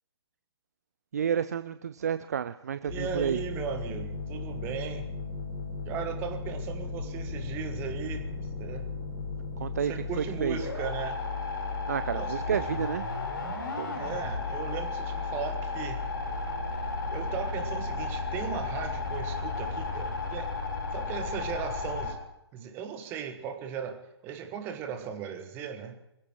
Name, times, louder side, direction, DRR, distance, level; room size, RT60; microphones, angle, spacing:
voice 1, 1.1-3.4 9.6-10.6 11.9-13.1 13.5-14.1, right 8 dB, 35° right, 13 dB, 0.5 m, -31 dB
voice 2, 2.8-5.1 5.8-8.2 8.6-8.9 9.8-11.2 12.1-12.8 13.9-16.0 17.1-20.5 20.9-22.2 22.5-26.0, right 8 dB, 15° right, 6 dB, 1.4 m, -37 dB
sound 1, 2.9-22.1, left 3 dB, 55° left, 4.1 m, -34 dB
26.0 x 15.5 x 3.1 m, 0.88 s
figure-of-eight pair, 135°, 14 cm